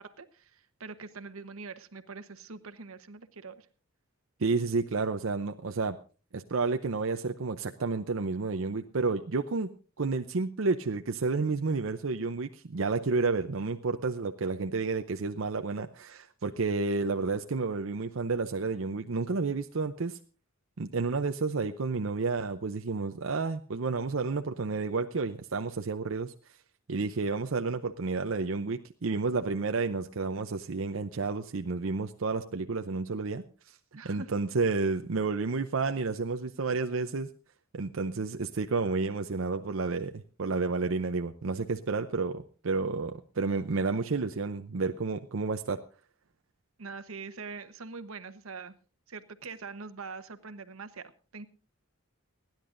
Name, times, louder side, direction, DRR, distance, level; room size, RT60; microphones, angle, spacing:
voice 1, 0.0-3.7 33.9-34.3 46.8-48.8 49.1-51.5, right 4 dB, 90° right, 10 dB, 1.1 m, -43 dB
voice 2, 4.4-6.0 6.3-9.7 10.0-20.2 20.8-26.3 26.9-33.8 34.0-37.3 37.7-45.8, right 4 dB, 65° right, 6 dB, 0.6 m, -31 dB
29.5 x 10.5 x 2.6 m, 0.36 s
head